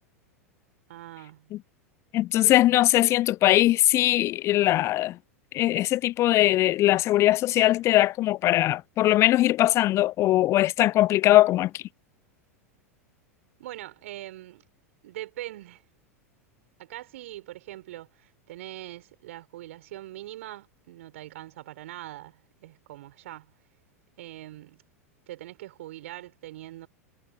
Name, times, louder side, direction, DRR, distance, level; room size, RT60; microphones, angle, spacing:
voice 1, 0.9-1.5 13.6-14.6 15.0-15.8 16.8-23.5 24.2-24.8 25.3-26.9, right 15 dB, 60° right, 6.1 m, -42 dB
voice 2, 2.1-5.2 5.5-11.8, left 15 dB, 35° left, 0.7 m, -21 dB
figure-of-eight pair, 90°, 8 cm